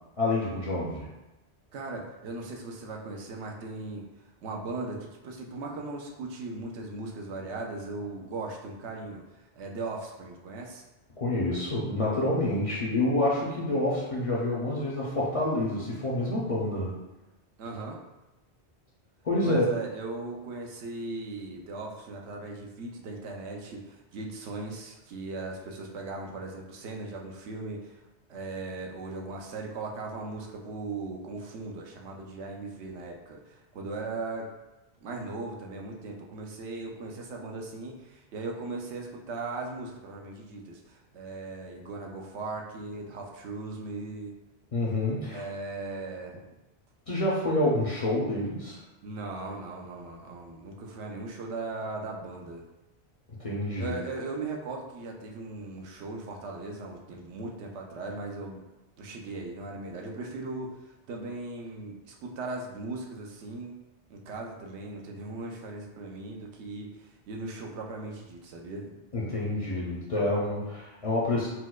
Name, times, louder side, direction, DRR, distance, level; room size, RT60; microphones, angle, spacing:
voice 1, 0.2-1.1 11.2-16.9 19.2-19.7 44.7-45.4 47.1-48.8 53.4-53.9 69.1-71.5, left 1 dB, 45° left, -5 dB, 0.4 m, -28 dB
voice 2, 1.7-4.0 4.4-10.8 17.6-18.0 19.4-28.0 28.3-34.5 35.0-44.3 45.3-46.4 49.0-52.6 53.8-58.6 59.0-60.7 61.1-63.7 64.1-69.0, right 3 dB, 90° right, 1 dB, 0.9 m, -38 dB
4.4 x 2.1 x 2.3 m, 1.0 s
omnidirectional pair, 1.1 m